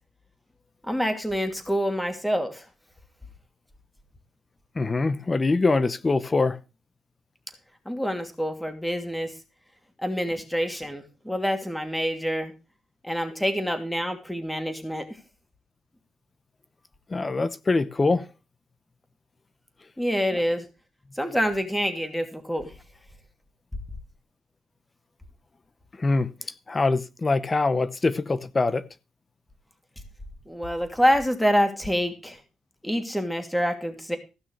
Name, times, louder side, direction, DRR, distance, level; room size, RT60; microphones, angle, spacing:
voice 1, 0.9-2.7 7.9-9.3 10.0-12.5 13.0-15.1 20.0-20.6 21.1-22.7 30.5-32.4 32.8-34.2, equal, 5° left, 2.7 m, -26 dB
voice 2, 4.7-6.6 17.1-18.3 20.3-20.4 25.9-28.8, left 3 dB, 30° left, 0.7 m, -24 dB
15.5 x 6.2 x 6.5 m
cardioid pair, 95°, 0 cm